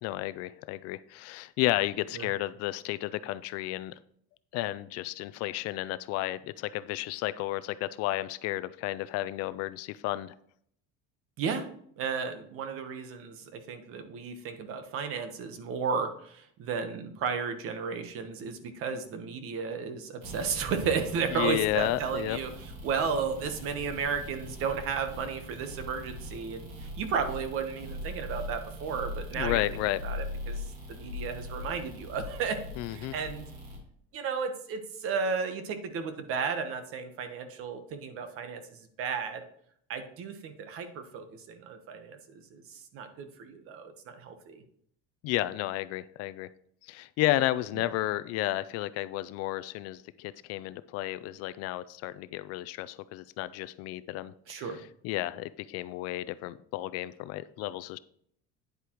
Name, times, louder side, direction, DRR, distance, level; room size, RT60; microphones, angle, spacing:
voice 1, 0.0-3.9 4.5-10.3 21.3-22.4 29.3-30.0 32.8-33.1 45.2-46.5 46.8-54.6 55.0-58.0, left 16 dB, 55° left, 15 dB, 0.4 m, -32 dB
voice 2, 11.4-11.7 12.0-29.6 30.0-33.5 34.1-39.4 39.9-44.6 47.8-47.9 54.5-54.8, right 5 dB, 45° right, 8 dB, 1.2 m, -34 dB
sound 1, 20.2-33.8, left 1 dB, 75° right, 3.2 m, -41 dB
9.7 x 8.2 x 3.0 m, 0.66 s
cardioid pair, 165°, 30 cm